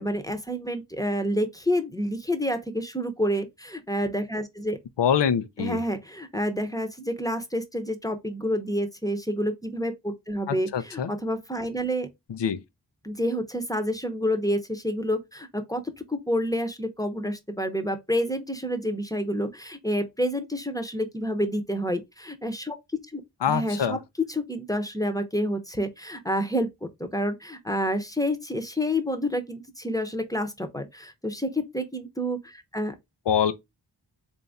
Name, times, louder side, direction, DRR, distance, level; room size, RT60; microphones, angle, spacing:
voice 1, 0.0-4.8 5.6-12.1 13.0-33.0, equal, 10° left, 0.8 m, -29 dB
voice 2, 5.0-5.8 10.5-11.1 12.4-12.6 23.4-24.0 33.3-33.5, left 8 dB, 80° left, 0.6 m, -24 dB
4.0 x 2.6 x 3.5 m
wide cardioid pair, 90°, 42 cm